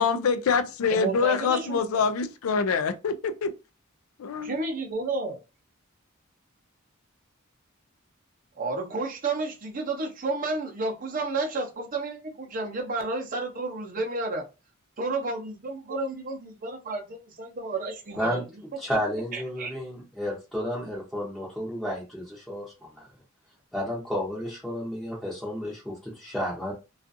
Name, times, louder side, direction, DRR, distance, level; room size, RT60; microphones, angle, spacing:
voice 1, 0.0-3.5 4.2-4.6, left 5 dB, 90° left, 0.4 m, -25 dB
voice 2, 0.9-2.1 4.4-5.4 8.6-14.5 15.0-18.4 19.3-19.7, right 3 dB, 40° right, 0.6 m, -31 dB
voice 3, 18.8-23.1 23.7-26.7, equal, ahead, 0.7 m, -32 dB
2.4 x 2.4 x 2.5 m
head